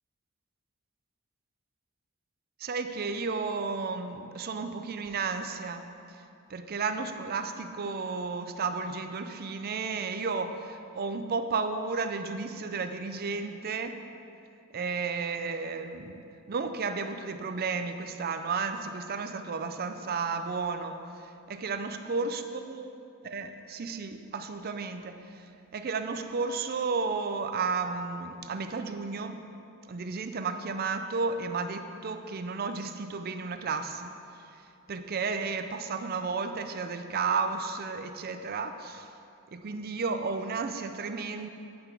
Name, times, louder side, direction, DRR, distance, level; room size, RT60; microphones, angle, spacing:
voice 1, 2.6-5.9 6.5-14.0 14.7-16.2 16.5-21.0 21.5-22.9 23.2-25.2 25.7-29.4 29.9-34.1 34.9-39.1 39.5-41.5, right 4 dB, 45° right, 8 dB, 0.5 m, -33 dB
8.6 x 5.9 x 8.1 m, 2.6 s
head